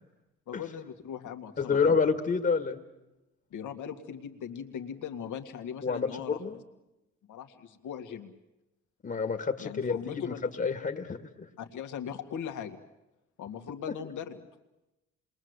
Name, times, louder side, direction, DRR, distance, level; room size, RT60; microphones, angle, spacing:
voice 1, 0.5-2.0 3.5-6.4 7.3-8.3 9.6-10.4 11.6-12.8 13.4-14.4, left 8 dB, 80° left, 6 dB, 2.2 m, -39 dB
voice 2, 1.6-2.8 5.8-6.6 9.0-11.5, left 5 dB, 35° left, 6 dB, 1.9 m, -29 dB
28.0 x 22.0 x 8.2 m, 0.96 s
cardioid pair, 90°, 30 cm